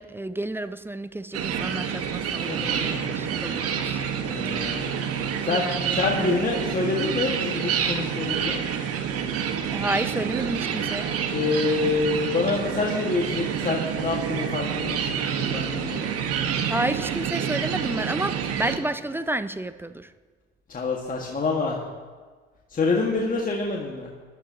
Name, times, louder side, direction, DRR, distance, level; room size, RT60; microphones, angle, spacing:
voice 1, 0.0-4.0 4.6-4.7 5.5-6.0 9.7-11.1 16.7-20.1, right 1 dB, 5° right, 12 dB, 0.5 m, -31 dB
sound 1, 1.3-18.8, right 8 dB, 50° right, 1.6 m, -28 dB
voice 2, 2.5-3.0 3.4-3.7 4.2-5.0 5.4-8.6 11.3-16.1 20.7-21.8 22.7-24.1, left 3 dB, 25° left, -2 dB, 1.9 m, -27 dB
20.5 x 12.0 x 3.0 m, 1.5 s
hypercardioid pair, 70°, 31 cm